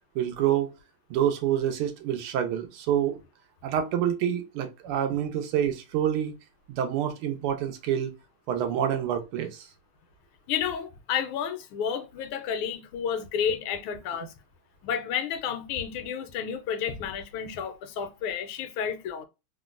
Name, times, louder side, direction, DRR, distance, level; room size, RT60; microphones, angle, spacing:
voice 1, 0.1-0.7 1.1-3.2 3.6-6.3 6.7-8.1 8.5-9.7, right 10 dB, 90° right, 1.6 m, -27 dB
voice 2, 10.5-14.3 14.8-19.3, left 8 dB, 80° left, 1.4 m, -31 dB
3.8 x 2.1 x 2.3 m
omnidirectional pair, 2.4 m